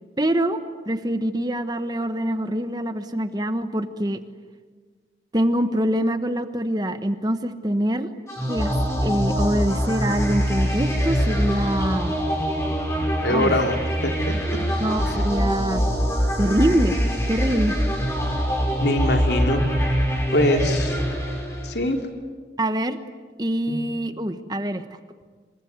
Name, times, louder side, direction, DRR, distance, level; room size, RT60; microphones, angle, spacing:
voice 1, 0.2-0.6 0.8-4.2 5.3-8.1 8.5-8.7 9.0-12.1 13.3-13.6 14.8-15.8 16.4-17.0 17.3-17.8 22.6-23.0 23.4-24.8, right 1 dB, 20° right, 9 dB, 1.2 m, -24 dB
sound 1, 8.3-21.9, equal, 15° left, 6.0 m, -24 dB
voice 2, 13.2-14.6 18.8-19.7 20.3-21.0 21.6-22.0 23.7-23.8, left 1 dB, 75° left, 4 dB, 2.9 m, -23 dB
26.5 x 23.5 x 9.4 m, 1.5 s
head